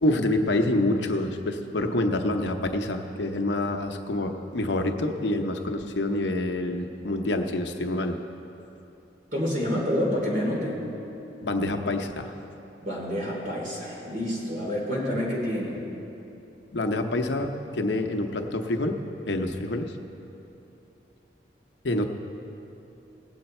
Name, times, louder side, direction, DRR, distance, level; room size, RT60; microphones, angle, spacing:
voice 1, 0.0-8.2 11.4-12.3 16.7-19.0 19.3-19.9 21.8-22.1, left 1 dB, 75° left, 5 dB, 0.8 m, -27 dB
voice 2, 9.3-10.8 12.8-15.8, equal, 50° right, -3 dB, 2.9 m, -28 dB
18.0 x 7.9 x 4.3 m, 3.0 s
head